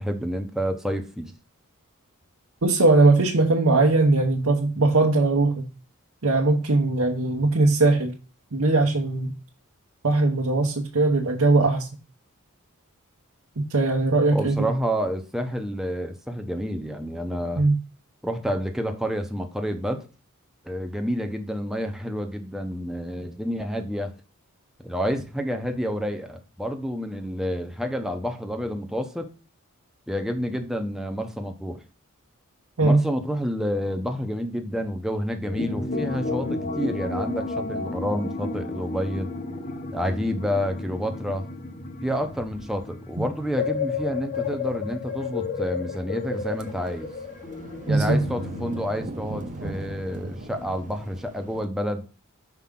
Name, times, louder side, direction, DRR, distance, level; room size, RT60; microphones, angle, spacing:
voice 1, 0.0-1.3 14.3-17.7 18.2-20.1 20.6-24.1 24.8-29.3 30.1-31.8 32.8-39.3 39.9-41.5 42.0-47.1 47.9-52.0, equal, ahead, 5 dB, 0.7 m, -29 dB
voice 2, 2.6-5.7 6.2-8.1 8.5-9.3 10.0-11.9 13.7-14.7 17.6-17.8 32.8-33.0 43.2-43.3 47.9-48.2, right 2 dB, 70° right, 0 dB, 1.0 m, -20 dB
sound 1, 35.4-48.8, left 4 dB, 35° left, 1.0 m, -32 dB
sound 2, 46.3-51.6, right 2 dB, 35° right, 0.8 m, -38 dB
5.9 x 4.8 x 3.6 m, 0.34 s
head